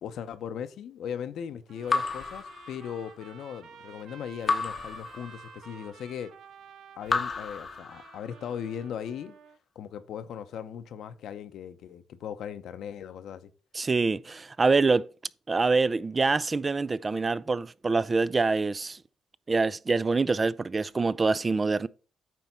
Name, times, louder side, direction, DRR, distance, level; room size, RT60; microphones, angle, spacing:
voice 1, 0.0-6.3 7.0-9.3 9.7-13.5, left 8 dB, 75° left, 0.8 m, -38 dB
Trumpet, 1.7-9.6, right 7 dB, 70° right, 0.7 m, -52 dB
Raindrop / Drip, 1.9-3.3 4.5-5.8 7.1-8.5, left 4 dB, 40° left, 0.8 m, -32 dB
voice 2, 13.7-15.1 15.5-19.0 19.5-21.9, right 3 dB, 30° right, 0.4 m, -25 dB
9.1 x 3.5 x 5.5 m
cardioid pair, 90°, 0 cm